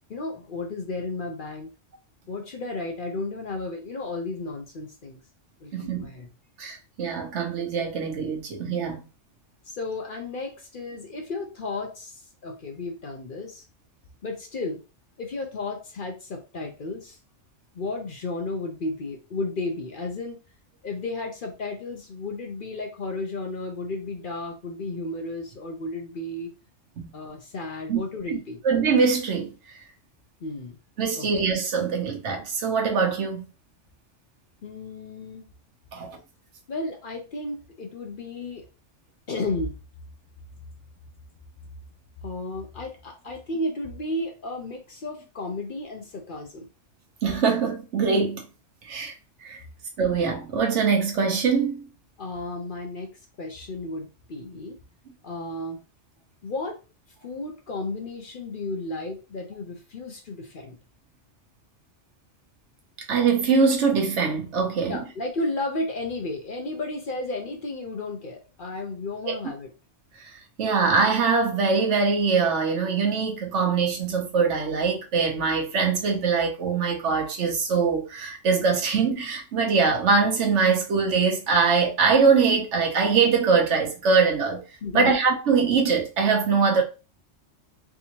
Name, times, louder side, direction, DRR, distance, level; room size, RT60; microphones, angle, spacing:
voice 1, 0.1-1.7 2.3-5.2 5.6-6.3 9.6-13.6 14.2-14.8 15.2-17.2 17.7-20.4 20.8-26.5 27.1-28.6 30.4-30.8 31.2-31.3 34.6-35.5 36.7-38.6 39.3-39.8 42.2-46.7 52.2-53.1 53.4-54.8 55.2-55.8 56.4-56.8 57.2-60.8 64.8-69.7 84.8-85.2, left 2 dB, 50° left, 0.7 m, -33 dB
voice 2, 5.7-6.1 6.6-9.1 27.0-27.1 27.9-28.0 28.3-28.4 28.6-29.8 31.0-33.4 35.9-36.2 47.2-48.5 48.8-49.1 49.4-49.6 50.0-51.8 63.1-65.0 69.3-69.4 70.6-84.6 84.9-86.8, right 5 dB, 70° right, 1.1 m, -23 dB
3.5 x 2.6 x 2.9 m
omnidirectional pair, 1.3 m